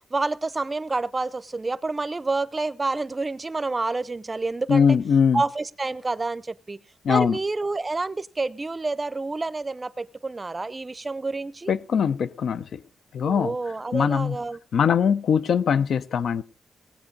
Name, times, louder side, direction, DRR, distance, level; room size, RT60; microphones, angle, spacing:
voice 1, 0.1-4.9 5.3-6.8 7.1-11.7 13.2-14.6, right 3 dB, 25° right, 0.5 m, -28 dB
voice 2, 4.7-5.4 7.0-7.4 11.7-12.8 13.1-13.6 13.9-14.4 14.7-16.4, left 7 dB, 75° left, 0.6 m, -21 dB
19.0 x 7.7 x 5.3 m
wide cardioid pair, 120°, 0 cm